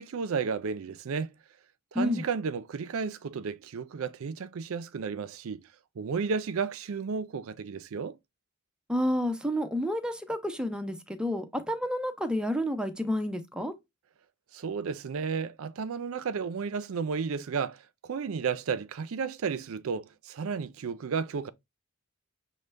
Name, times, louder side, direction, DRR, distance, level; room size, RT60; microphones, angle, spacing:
voice 1, 0.0-1.3 1.9-5.6 6.0-8.2 14.5-21.5, right 5 dB, 70° right, 0.4 m, -33 dB
voice 2, 8.9-13.7, equal, 5° right, 0.6 m, -30 dB
6.3 x 2.1 x 3.3 m
head